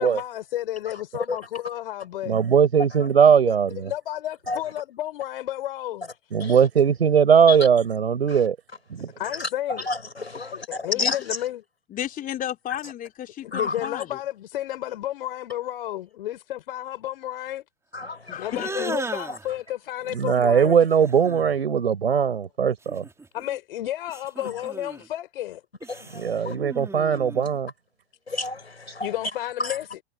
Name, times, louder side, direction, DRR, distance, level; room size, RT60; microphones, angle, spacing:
voice 1, 0.0-2.4 3.2-6.1 9.2-9.9 10.4-11.6 13.4-17.6 18.3-20.8 23.3-25.6 29.0-30.0, left 13 dB, 60° left, 4.3 m, -32 dB
voice 2, 2.3-3.9 6.3-8.6 8.9-9.1 20.1-23.0 26.1-27.7, right 7 dB, 75° right, 5.2 m, -19 dB
voice 3, 9.9-10.6 11.0-11.2 13.5-13.7 17.9-18.4 25.9-26.5 28.3-29.1, left 3 dB, 85° left, 6.0 m, -30 dB
voice 4, 11.9-14.1 18.3-19.0, left 11 dB, 25° left, 2.9 m, -33 dB
sound 1, 18.5-19.5 20.9-21.6 22.8-23.6 24.1-25.1 25.8-27.6, right 3 dB, 10° right, 4.1 m, -36 dB
figure-of-eight pair, 100°, 32 cm